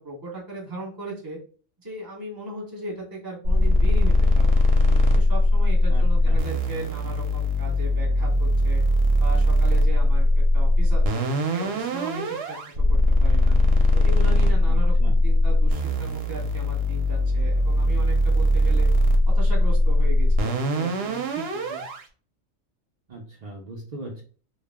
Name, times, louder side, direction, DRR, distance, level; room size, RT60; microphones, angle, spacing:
voice 1, 0.0-1.4 1.8-4.7 5.1-8.8 9.2-12.6 12.9-13.6 13.9-18.9 19.3-21.8, right 2 dB, 20° right, -2 dB, 0.8 m, -37 dB
sound 1, 3.4-22.0, left 1 dB, 65° right, 0.7 m, -20 dB
voice 2, 5.9-6.5 14.7-15.2 23.1-24.2, right 2 dB, 85° right, -1 dB, 0.3 m, -39 dB
2.3 x 2.0 x 3.4 m, 0.41 s
omnidirectional pair, 1.3 m